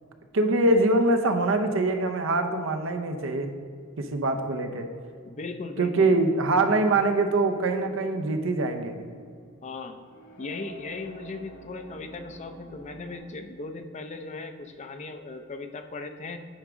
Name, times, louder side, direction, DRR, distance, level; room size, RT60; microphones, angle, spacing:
voice 1, 0.3-3.5 4.0-4.9 5.8-9.0, right 2 dB, 70° right, 6 dB, 0.7 m, -24 dB
voice 2, 5.3-6.2 9.6-10.0 10.4-16.4, left 3 dB, 35° left, 7 dB, 0.5 m, -37 dB
sound 1, 7.3-13.2, right 1 dB, 65° left, 1.5 m, -49 dB
9.1 x 3.6 x 5.0 m, 2.2 s
head